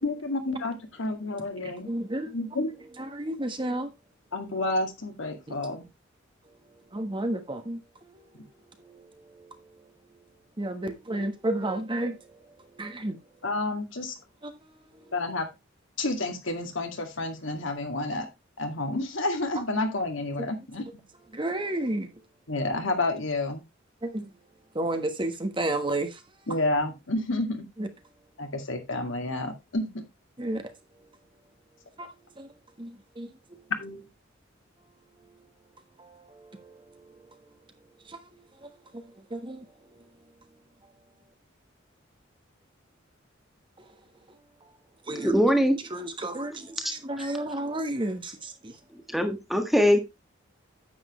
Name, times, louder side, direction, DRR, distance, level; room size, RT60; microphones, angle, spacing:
voice 1, 0.0-1.9 2.3-2.7 4.3-5.9 13.4-14.1 15.1-15.5 16.0-18.3 18.6-21.0 22.5-23.7 26.5-27.7 28.4-30.1 33.8-34.1, left 2 dB, 70° left, 2.1 m, -30 dB
voice 2, 1.8-2.4 3.0-3.9 5.5-5.6 6.9-8.4 8.8-9.6 10.6-13.2 14.4-15.1 20.4-20.5 21.3-22.1 24.0-24.3 24.7-26.2 27.8-27.9 30.4-30.7 32.0-32.5 32.8-33.6 36.0-37.2 38.0-40.1 43.8-43.9 44.6-44.8 45.1-45.4 45.9-48.8, right 1 dB, 25° right, 1.3 m, -33 dB
voice 3, 45.1-45.8 49.1-50.0, equal, ahead, 1.5 m, -22 dB
9.7 x 7.8 x 3.1 m
head